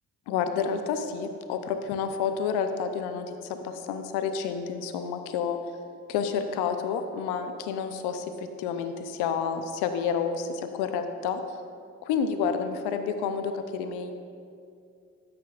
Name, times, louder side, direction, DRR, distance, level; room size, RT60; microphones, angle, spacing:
voice 1, 0.3-5.6 6.1-8.3 8.6-11.4 12.0-14.1, left 6 dB, 75° left, 8 dB, 0.8 m, -29 dB
12.5 x 9.5 x 2.5 m, 2.4 s
hypercardioid pair, 50°, 39 cm